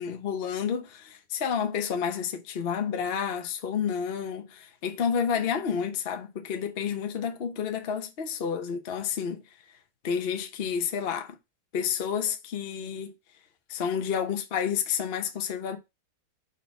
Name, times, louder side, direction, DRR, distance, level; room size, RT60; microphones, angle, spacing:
voice 1, 0.0-9.4 10.0-11.4 11.7-13.1 13.7-15.8, left 7 dB, 55° left, 0.6 m, -30 dB
4.5 x 4.2 x 5.7 m
omnidirectional pair, 2.4 m